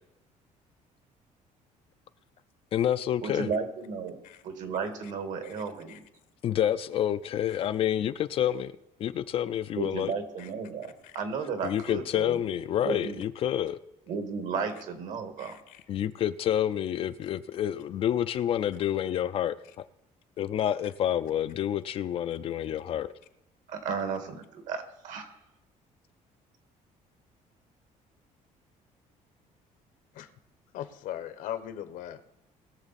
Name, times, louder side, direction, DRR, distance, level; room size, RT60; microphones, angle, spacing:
voice 1, 2.7-3.5 6.4-8.7 9.0-10.1 11.6-13.8 15.9-19.8 20.4-23.1, left 10 dB, 45° left, 0.4 m, -28 dB
voice 2, 3.2-4.2 4.4-6.0 9.8-13.2 14.1-15.6 23.7-25.4, right 5 dB, 65° right, 1.9 m, -34 dB
voice 3, 15.4-15.8 30.1-30.3 30.7-32.2, left 11 dB, 75° left, 1.0 m, -39 dB
20.5 x 7.0 x 4.1 m
cardioid pair, 170°, 14 cm